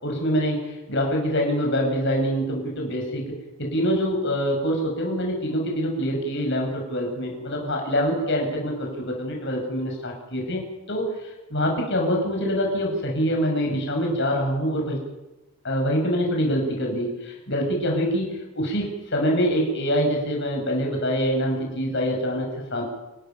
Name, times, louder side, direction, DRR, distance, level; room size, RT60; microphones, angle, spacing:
voice 1, 0.0-10.6 10.9-11.1 11.5-15.0 15.6-22.8, equal, 50° left, 1 dB, 6.1 m, -25 dB
27.5 x 12.5 x 9.2 m, 1.0 s
head